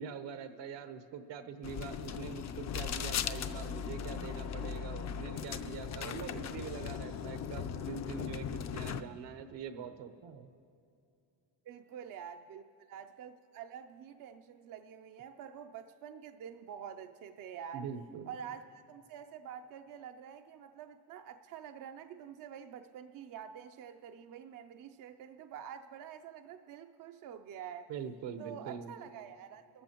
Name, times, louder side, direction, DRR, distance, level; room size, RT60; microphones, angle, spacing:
voice 1, 0.0-10.5 17.7-18.3 27.9-28.9, right 7 dB, 70° right, 9 dB, 1.0 m, -44 dB
sound 1, 1.6-9.0, left 7 dB, 40° left, 0.5 m, -38 dB
voice 2, 11.6-17.9 18.3-27.9 28.4-29.8, right 8 dB, 50° right, 7 dB, 0.5 m, -47 dB
26.0 x 14.0 x 2.9 m, 2.5 s
cardioid pair, 115°, 45 cm